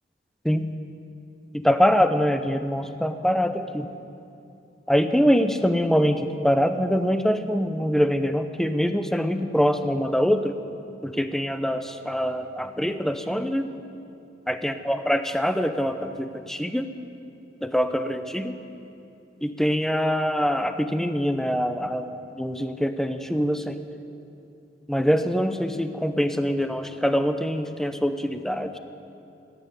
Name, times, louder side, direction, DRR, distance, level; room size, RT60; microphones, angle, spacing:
voice 1, 1.5-3.9 4.9-10.6 11.0-13.7 14.5-16.9 17.6-18.6 19.4-22.1 22.4-23.8 24.9-28.8, equal, ahead, 8 dB, 0.6 m, -24 dB
16.5 x 8.8 x 9.8 m, 2.7 s
head